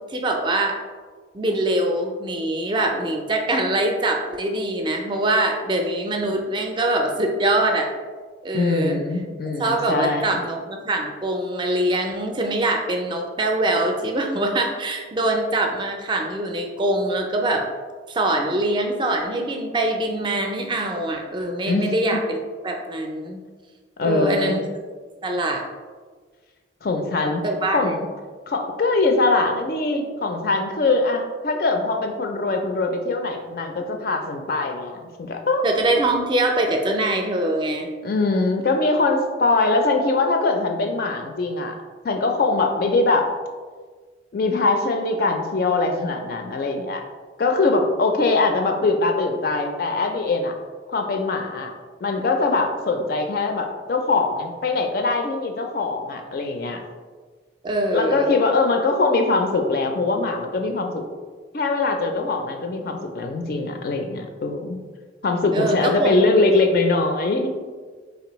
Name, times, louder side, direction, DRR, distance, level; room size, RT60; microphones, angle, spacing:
voice 1, 0.1-0.8 1.3-7.9 8.4-9.0 9.6-17.7 18.1-22.4 22.6-23.4 24.0-24.6 25.2-25.6 27.4-27.9 35.6-37.9 57.6-58.3 65.5-66.6, right 1 dB, 25° right, 2 dB, 0.4 m, -23 dB
voice 2, 8.5-10.4 21.7-22.2 24.0-24.6 26.8-27.4 27.7-28.1 28.5-35.6 38.0-41.8 42.0-43.3 44.3-47.0 47.4-50.5 50.9-51.7 52.0-56.8 57.9-61.0 61.5-64.8 65.2-67.5, left 3 dB, 50° left, 4 dB, 0.4 m, -22 dB
4.0 x 3.3 x 3.0 m, 1.5 s
head